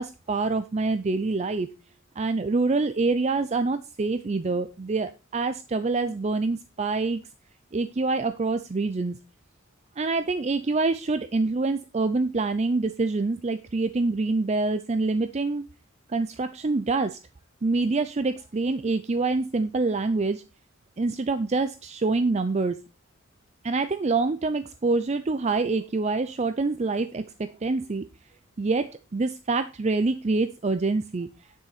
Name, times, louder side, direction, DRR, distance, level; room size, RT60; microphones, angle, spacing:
voice 1, 0.0-1.7 2.2-7.2 7.7-9.2 10.0-15.7 16.1-17.2 17.6-20.4 21.0-22.8 23.6-28.1 28.6-31.3, right 3 dB, 30° right, 10 dB, 0.5 m, -26 dB
10.0 x 6.4 x 4.1 m, 0.30 s
head